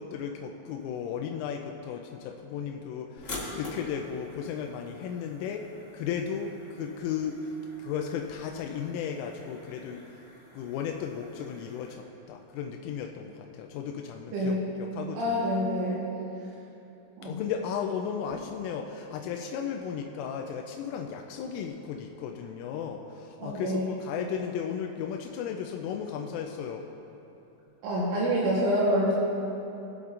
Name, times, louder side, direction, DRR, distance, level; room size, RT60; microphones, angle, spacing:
voice 1, 0.0-5.6 5.9-7.5 7.8-10.0 10.5-15.4 17.2-26.9, left 7 dB, 90° left, 2 dB, 3.2 m, -35 dB
sound 1, 3.2-11.9, left 1 dB, 50° left, 0.9 m, -46 dB
voice 2, 14.3-14.7 15.2-16.1 17.2-17.4 23.4-23.9 27.8-29.1, equal, 75° right, -7 dB, 3.5 m, -27 dB
22.0 x 7.8 x 2.5 m, 2.9 s
omnidirectional pair, 5.6 m